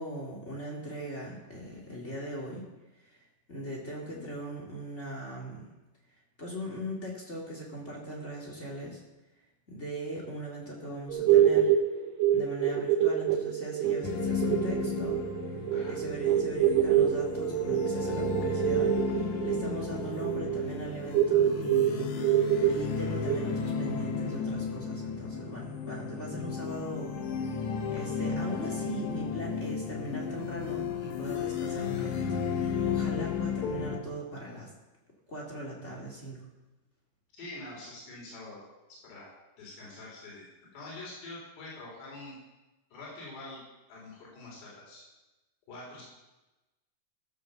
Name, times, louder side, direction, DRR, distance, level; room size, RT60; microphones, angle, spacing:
voice 1, 0.0-2.7 3.0-3.2 3.5-5.6 6.4-9.0 9.7-11.7 12.3-15.2 15.9-22.1 22.6-27.1 27.9-34.7 35.3-36.5, right 1 dB, 25° left, -2 dB, 1.6 m, -40 dB
sound 1, 11.1-23.6, right 10 dB, 85° right, 1.9 m, -26 dB
sound 2, 14.0-34.0, left 6 dB, 65° left, 1.9 m, -34 dB
voice 2, 37.4-38.6 38.9-39.3 39.6-40.5 40.7-42.4 42.9-43.6 43.9-45.0 45.7-46.0, left 2 dB, 85° left, -5 dB, 5.9 m, -45 dB
15.0 x 7.6 x 6.9 m, 1.1 s
omnidirectional pair, 4.7 m